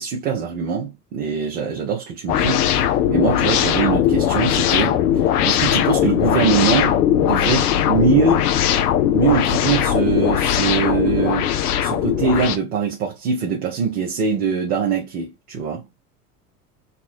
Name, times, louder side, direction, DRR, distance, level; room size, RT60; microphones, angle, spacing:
voice 1, 0.0-8.5 9.1-11.5 11.8-15.8, right 5 dB, 70° right, 1.2 m, -22 dB
sound 1, 2.3-12.6, left 10 dB, 75° left, 0.7 m, -19 dB
4.2 x 2.3 x 4.4 m
hypercardioid pair, 75°, 46 cm